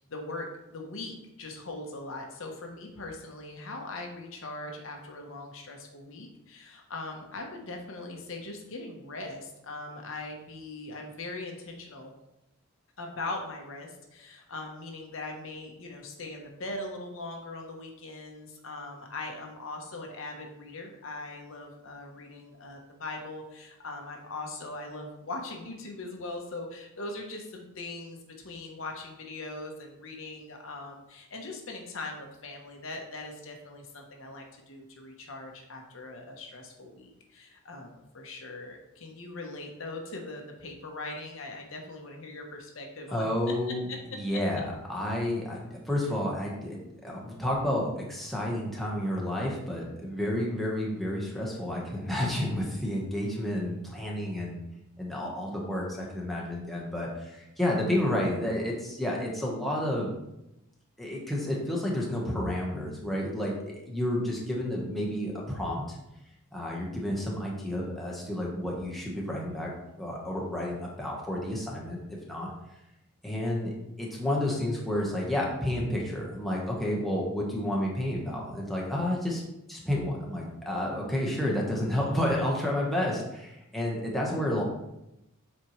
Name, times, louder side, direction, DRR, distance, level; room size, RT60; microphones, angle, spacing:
voice 1, 0.0-12.1 13.0-28.2 28.4-43.3, left 2 dB, 60° left, 2 dB, 0.9 m, -40 dB
voice 2, 43.1-43.9 44.1-54.6 55.0-60.1 61.0-63.5 63.9-66.0 66.5-69.7 70.0-72.0 72.3-72.5 73.2-79.4 79.7-84.6, left 1 dB, ahead, -4 dB, 1.1 m, -30 dB
7.7 x 4.3 x 3.1 m, 0.89 s
head